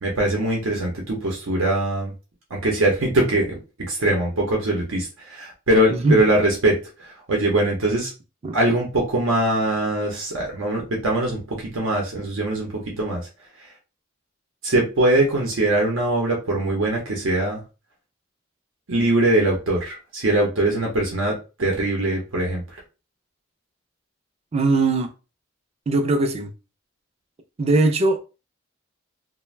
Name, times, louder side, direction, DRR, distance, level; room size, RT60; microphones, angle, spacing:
voice 1, 0.0-2.1 2.5-3.5 3.9-8.1 8.5-13.2 14.6-17.6 18.9-22.6, right 1 dB, 80° right, 0.7 m, -22 dB
voice 2, 5.9-6.2 8.4-8.6 24.5-25.1 25.9-26.5 27.6-28.2, right 2 dB, 30° right, 0.4 m, -20 dB
2.4 x 2.1 x 3.1 m
head